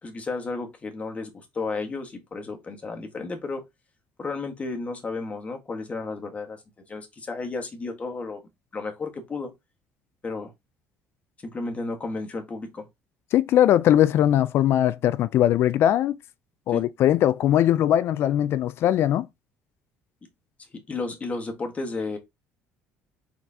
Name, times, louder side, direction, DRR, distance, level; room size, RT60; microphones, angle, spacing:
voice 1, 0.0-3.6 4.2-6.6 6.9-8.4 8.7-9.5 10.2-10.5 11.4-12.9 16.7-16.9 20.7-22.2, left 3 dB, 30° left, 1.5 m, -33 dB
voice 2, 13.3-16.2 16.7-19.3, left 11 dB, 60° left, 0.3 m, -20 dB
4.2 x 4.1 x 2.8 m
supercardioid pair, 90°, 5 cm